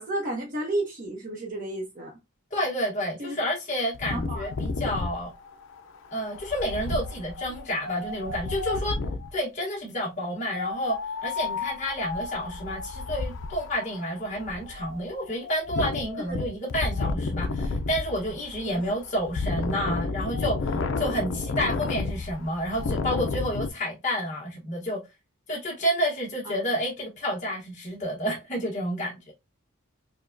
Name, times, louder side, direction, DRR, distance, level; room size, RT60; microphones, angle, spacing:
voice 1, 0.0-2.1 3.2-3.4 4.1-4.5 4.9-5.0 16.2-16.4 18.6-18.8 26.4-26.6, right 1 dB, 40° right, 0.8 m, -32 dB
voice 2, 2.5-5.3 6.1-9.0 9.3-11.0 11.2-25.0 25.5-29.3, equal, 35° left, 1.0 m, -30 dB
Wind, 3.9-9.4 10.4-23.7, left 3 dB, 60° left, 0.4 m, -32 dB
4.8 x 2.2 x 2.5 m
head